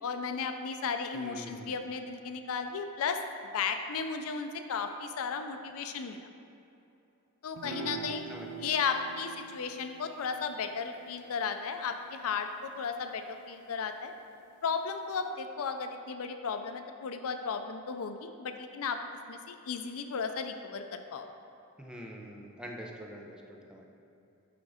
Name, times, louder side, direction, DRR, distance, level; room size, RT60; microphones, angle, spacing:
voice 1, 0.0-3.2 3.5-6.2 7.4-8.2 8.6-14.1 14.6-19.0 19.3-21.3, left 5 dB, 70° left, 7 dB, 0.5 m, -35 dB
voice 2, 1.1-1.8 7.6-8.7 21.8-23.9, equal, 5° right, -1 dB, 0.6 m, -45 dB
sound 1, 7.6-14.1, right 7 dB, 65° right, 0.4 m, -47 dB
10.0 x 3.6 x 4.9 m, 2.7 s
head